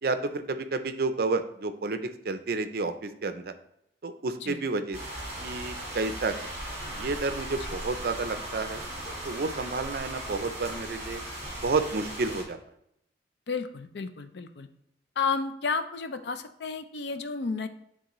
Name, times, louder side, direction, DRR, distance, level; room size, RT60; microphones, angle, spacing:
voice 1, 0.0-3.5 4.0-5.0 5.4-6.3 6.9-8.8 9.2-11.2 11.6-12.6, right 3 dB, 55° right, 10 dB, 0.5 m, -30 dB
sound 1, 4.9-12.4, right 1 dB, 20° right, 2.6 m, -37 dB
voice 2, 13.5-14.7 15.2-17.7, left 5 dB, 70° left, 9 dB, 0.5 m, -32 dB
9.6 x 3.7 x 3.0 m, 0.76 s
head